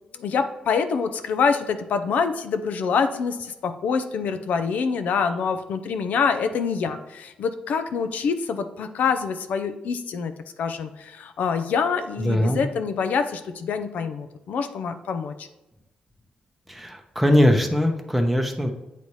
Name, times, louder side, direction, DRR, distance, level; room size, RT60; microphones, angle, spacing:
voice 1, 0.1-10.3 10.6-15.5, left 6 dB, 80° left, 9 dB, 0.6 m, -26 dB
voice 2, 12.2-12.6 16.7-18.7, left 1 dB, ahead, 3 dB, 0.7 m, -21 dB
8.3 x 4.0 x 3.2 m, 0.97 s
cardioid pair, 105°, 3 cm